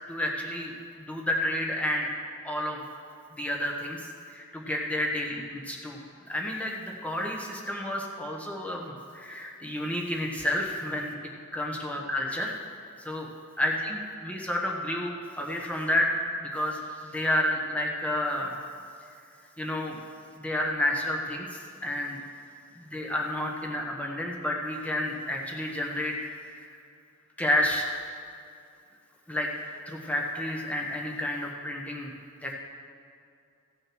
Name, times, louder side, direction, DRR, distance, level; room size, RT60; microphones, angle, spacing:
voice 1, 0.1-0.7 1.0-2.1 2.4-2.8 3.3-6.0 6.3-11.1 11.5-12.5 13.0-13.3 13.6-16.1 16.4-18.6 19.6-20.0 20.4-22.2 22.7-26.1 26.4-26.8 27.4-27.9 29.3-29.5 29.9-32.1 32.4-32.5, left 1 dB, 5° left, -1 dB, 1.1 m, -30 dB
15.5 x 6.3 x 6.1 m, 2.5 s
head